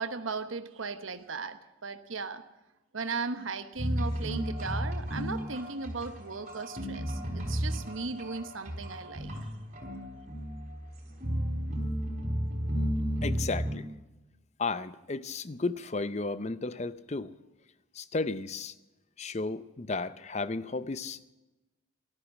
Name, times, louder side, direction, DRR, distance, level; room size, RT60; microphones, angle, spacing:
voice 1, 0.0-2.4 2.9-9.5, right 4 dB, 85° right, 10 dB, 1.1 m, -37 dB
sound 1, 3.8-13.7, equal, 35° right, 3.9 m, -33 dB
voice 2, 13.2-13.9 14.6-17.3 17.9-18.7 19.2-21.3, left 3 dB, 35° left, 15 dB, 0.6 m, -33 dB
13.0 x 13.0 x 7.5 m, 1.1 s
head